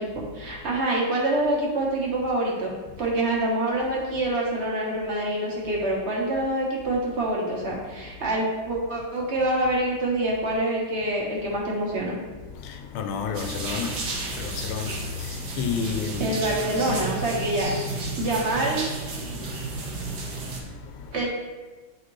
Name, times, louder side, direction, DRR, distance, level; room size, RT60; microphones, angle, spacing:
voice 1, 0.0-2.7 3.0-12.2 16.2-18.9 21.1-21.3, right 1 dB, 35° right, 1.4 m, -26 dB
voice 2, 12.5-16.3 18.1-18.2 19.2-21.2, left 5 dB, 85° left, 1.5 m, -33 dB
sound 1, 13.3-20.6, right 2 dB, 55° right, 1.4 m, -32 dB
10.0 x 4.0 x 3.2 m
omnidirectional pair, 2.3 m